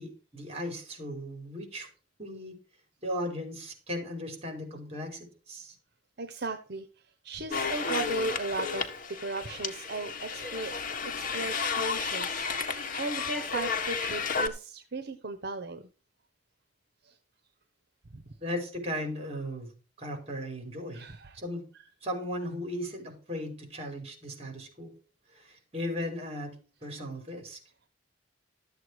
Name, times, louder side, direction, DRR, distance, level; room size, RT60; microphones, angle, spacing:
voice 1, 0.0-1.9 2.2-2.5 3.0-5.7 18.4-19.7 20.0-21.0 21.3-21.6 22.0-24.9 25.3-26.5 26.8-27.6, equal, 35° right, 4 dB, 5.1 m, -36 dB
voice 2, 6.2-6.9 7.2-10.7 11.1-15.9 17.0-17.2 18.1-18.2 20.9-21.4, right 2 dB, 60° right, 8 dB, 1.0 m, -36 dB
sound 1, 7.5-14.5, left 5 dB, 50° left, 1.6 m, -32 dB
13.0 x 8.0 x 4.8 m, 0.36 s
head